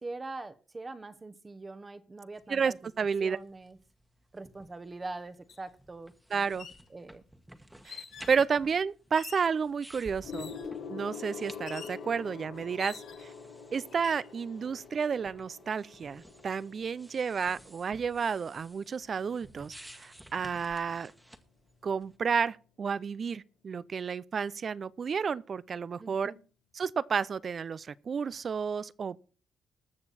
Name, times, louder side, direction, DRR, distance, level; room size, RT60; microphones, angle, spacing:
voice 1, 0.0-2.8 3.2-3.8 4.3-6.1 6.9-7.2 26.0-26.4, right 3 dB, 25° right, 1.0 m, -42 dB
sound 1, 2.3-22.1, right 1 dB, 5° right, 1.4 m, -55 dB
voice 2, 2.5-3.4 6.3-6.7 7.8-10.5 10.9-13.3 13.7-21.1 21.8-26.3 26.8-29.2, right 6 dB, 45° right, 0.5 m, -31 dB
sound 2, 5.5-5.6 6.4-6.8 7.8-8.4 9.1-9.5 10.3-10.7 11.7-12.0 12.8-13.4 13.9-14.3, left 7 dB, 70° left, 2.6 m, -46 dB
Gong, 10.2-20.0 20.9-21.2, left 6 dB, 85° left, 3.6 m, -46 dB
20.0 x 6.8 x 4.2 m
cardioid pair, 90°, 0 cm